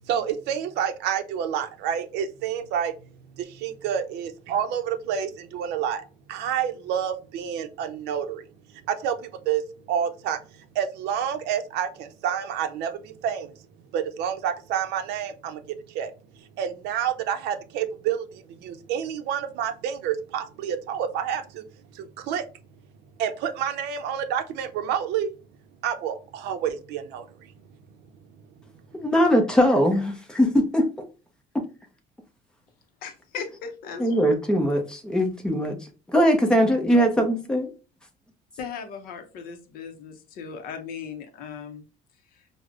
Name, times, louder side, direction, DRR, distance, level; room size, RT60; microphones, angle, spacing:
voice 1, 0.1-2.9 3.3-8.4 8.9-13.6 13.9-21.6 21.9-22.4 23.2-25.3 25.8-27.5, right 8 dB, 75° right, 0.5 m, -29 dB
voice 2, 28.9-30.8 34.0-35.8 36.1-37.7, equal, 5° left, 0.5 m, -21 dB
voice 3, 33.0-34.2 38.6-41.8 42.3-42.5, left 6 dB, 60° left, 0.6 m, -37 dB
4.9 x 2.0 x 2.3 m
cardioid pair, 175°, 17 cm